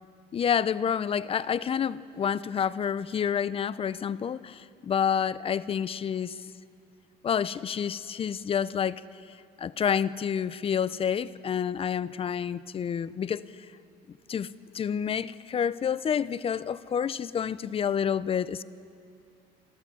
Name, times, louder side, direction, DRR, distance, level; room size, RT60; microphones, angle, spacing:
voice 1, 0.3-6.4 7.2-9.0 9.6-13.4 14.3-18.6, left 8 dB, 35° left, 17 dB, 0.5 m, -29 dB
29.5 x 12.5 x 7.0 m, 2.4 s
cardioid pair, 110°, 17 cm